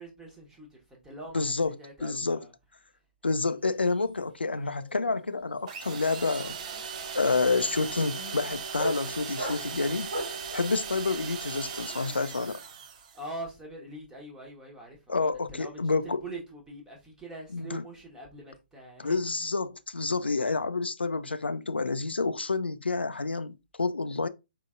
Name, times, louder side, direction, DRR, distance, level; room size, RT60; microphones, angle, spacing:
voice 1, 0.0-2.5 3.4-3.6 13.1-19.2, right 2 dB, 10° right, 1.2 m, -43 dB
voice 2, 1.3-1.7 2.0-2.4 3.2-6.6 7.1-12.6 15.1-16.2 17.5-17.8 19.0-24.3, left 3 dB, 80° left, 0.4 m, -29 dB
sound 1, 3.7-4.0 4.3-10.5, equal, 85° right, 2.9 m, -39 dB
sound 2, 5.7-13.3, right 6 dB, 40° right, 0.6 m, -38 dB
4.4 x 3.8 x 2.5 m
figure-of-eight pair, 130°, 6 cm